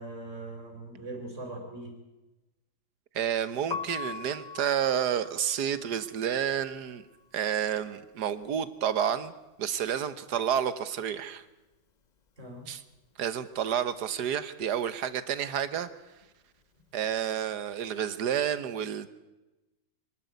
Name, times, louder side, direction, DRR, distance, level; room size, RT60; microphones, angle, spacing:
voice 1, 0.0-1.9 12.4-12.7, right 2 dB, 45° right, 2 dB, 4.8 m, -41 dB
voice 2, 3.1-7.0 7.3-9.3 9.6-11.4 12.7-12.8 13.2-15.9 16.9-19.1, right 9 dB, 75° right, 14 dB, 1.6 m, -30 dB
Piano, 3.6-9.5 9.8-11.4 11.6-18.1, left 6 dB, 35° left, 0.7 m, -44 dB
24.0 x 12.0 x 9.4 m, 1.1 s
omnidirectional pair, 1.8 m